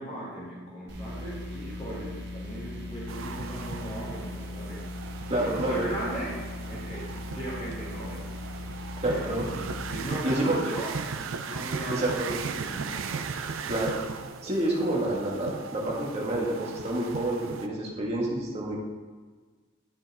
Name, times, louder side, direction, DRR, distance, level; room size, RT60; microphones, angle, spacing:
voice 1, 0.0-4.8 5.3-6.3 6.6-8.2 9.0-10.9 11.4-13.8, right 1 dB, 30° left, -8 dB, 2.5 m, -38 dB
sound 1, 0.9-10.1, left 2 dB, 55° right, 1.6 m, -38 dB
sound 2, 3.1-17.7, right 5 dB, 70° right, 0.5 m, -38 dB
voice 2, 5.3-5.8 9.0-9.5 10.2-10.6 11.9-12.1 13.7-14.0 14.4-18.8, right 1 dB, 30° right, -4 dB, 1.8 m, -28 dB
12.0 x 5.5 x 3.6 m, 1.4 s
head